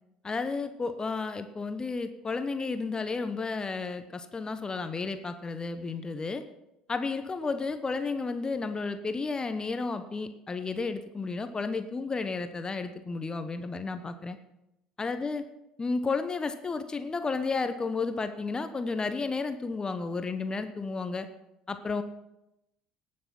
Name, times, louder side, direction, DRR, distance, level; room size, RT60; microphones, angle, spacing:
voice 1, 0.2-6.4 6.9-14.4 15.0-15.4 15.8-21.3 21.7-22.0, left 4 dB, 25° left, 9 dB, 1.0 m, -32 dB
18.5 x 6.5 x 6.0 m, 0.88 s
figure-of-eight pair, 60°, 3 cm